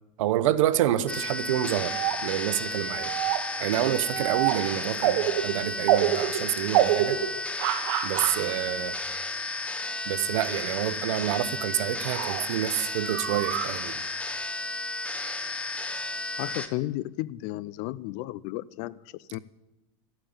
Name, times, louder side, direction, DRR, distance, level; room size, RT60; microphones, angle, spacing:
voice 1, 0.2-3.1 3.6-7.2 8.0-9.0 10.0-14.0, right 12 dB, 90° right, 0.9 m, -28 dB
sound 1, 1.1-16.7, left 2 dB, 10° left, 1.0 m, -33 dB
sound 2, 1.7-2.4 2.9-3.6 4.1-8.5 10.4-10.5 11.2-11.3 12.0-12.5 13.1-13.8, right 12 dB, 70° right, 1.4 m, -27 dB
voice 2, 16.4-18.9 19.3-19.4, left 17 dB, 55° left, 0.6 m, -33 dB
13.0 x 9.1 x 8.8 m
supercardioid pair, 140°, 16 cm